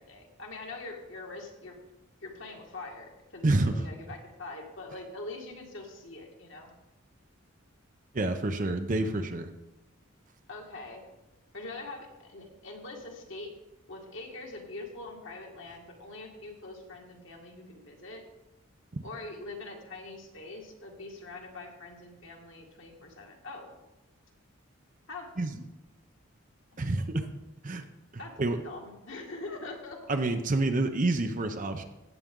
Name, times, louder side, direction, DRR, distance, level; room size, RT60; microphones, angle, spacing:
voice 1, 0.0-1.8 2.2-6.7 10.5-11.0 11.5-13.5 13.9-18.2 19.0-23.7 25.1-25.3 28.2-28.3 28.6-30.2, left 2 dB, 65° left, 1 dB, 2.0 m, -43 dB
voice 2, 3.4-3.9 8.1-9.5 18.9-19.1 25.4-25.6 26.8-27.3 27.6-27.9 28.4-28.6 30.1-31.8, right 2 dB, 40° right, 7 dB, 0.6 m, -28 dB
16.0 x 8.0 x 3.7 m, 0.99 s
head